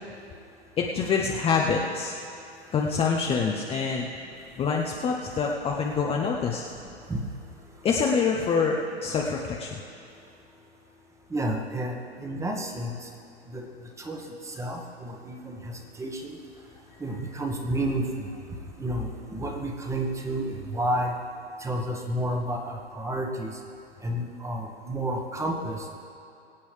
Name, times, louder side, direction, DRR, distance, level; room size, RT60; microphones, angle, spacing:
voice 1, 0.8-2.1 2.7-4.1 4.6-6.6 7.8-9.8, left 5 dB, 15° left, -1 dB, 0.8 m, -26 dB
voice 2, 11.3-13.1 13.5-13.6 14.0-16.4 17.0-18.0 18.8-21.1 21.6-23.5 24.0-25.8, right 1 dB, 10° right, 2 dB, 1.4 m, -31 dB
23.5 x 8.7 x 3.4 m, 2.8 s
figure-of-eight pair, 105°, 33 cm